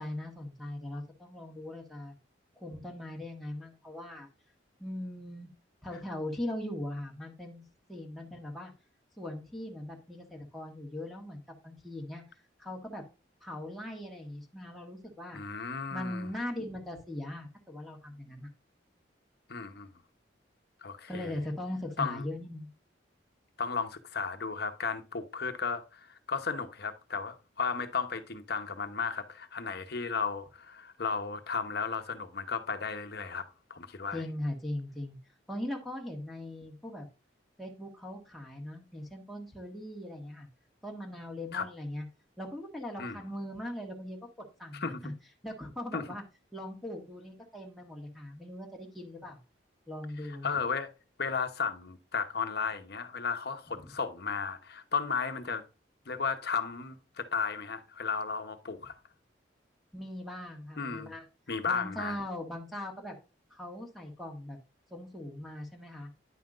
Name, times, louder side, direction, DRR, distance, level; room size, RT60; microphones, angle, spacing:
voice 1, 0.0-2.1 2.6-4.3 4.8-5.5 5.8-7.6 7.9-8.7 9.2-12.2 12.6-13.0 13.4-15.4 15.9-18.5 21.1-22.7 34.1-35.2 35.5-37.0 37.6-40.5 40.8-42.0 42.4-44.2 44.6-45.1 45.4-46.2 46.5-49.4 49.9-50.5 59.9-61.2 61.7-63.1 63.5-64.6 64.9-66.1, left 1 dB, ahead, 1.5 m, -40 dB
voice 2, 15.3-16.3 19.5-19.9 20.8-21.4 22.0-22.2 23.6-33.4 33.7-34.2 41.5-41.6 43.0-43.2 44.7-45.0 45.9-46.1 50.3-50.9 51.2-55.6 56.1-59.0 60.8-61.1 61.5-62.2, left 5 dB, 55° left, 1.0 m, -34 dB
9.8 x 5.7 x 2.5 m
head